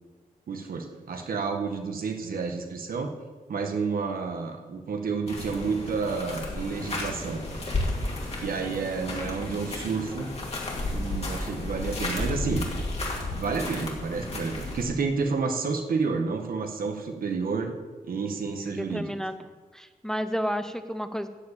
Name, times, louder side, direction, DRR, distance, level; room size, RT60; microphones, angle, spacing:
voice 1, 0.5-3.1 3.5-7.4 8.4-10.3 10.9-12.6 13.3-17.7 18.0-19.1, right 4 dB, 75° right, 4 dB, 1.4 m, -30 dB
sound 1, 5.3-14.8, left 2 dB, 45° left, 2.4 m, -33 dB
voice 2, 18.6-19.4 19.7-21.3, equal, 5° left, 10 dB, 0.5 m, -31 dB
13.0 x 4.9 x 8.7 m, 1.4 s
wide cardioid pair, 145°, 15 cm